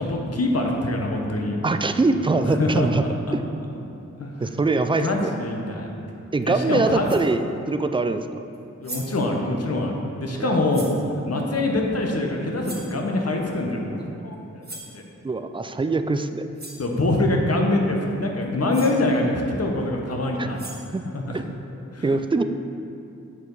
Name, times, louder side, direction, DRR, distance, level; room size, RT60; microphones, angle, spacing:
voice 1, 0.0-1.6 2.6-2.9 3.3-3.4 4.2-4.3 5.0-5.9 6.4-7.1 8.8-10.9 11.3-14.8 16.8-20.6 21.1-21.4 21.9-22.0, left 2 dB, 55° left, 1 dB, 1.0 m, -24 dB
voice 2, 1.6-3.0 4.4-5.3 6.3-8.4 10.4-10.6 15.2-16.5 20.4-20.5 20.9-21.0 21.3-21.4 22.0-22.4, right 3 dB, 20° right, 9 dB, 0.3 m, -23 dB
sound 1, 6.4-6.5 7.0-7.3 8.5-8.6 8.8-9.2 10.7-11.0 12.6-13.0 14.6-15.0 16.2-16.3 16.6-16.9 18.4-18.5 18.7-19.0 20.3-21.0, right 2 dB, 35° right, 1.2 m, -39 dB
8.1 x 4.7 x 3.9 m, 2.6 s
wide cardioid pair, 55°, 30 cm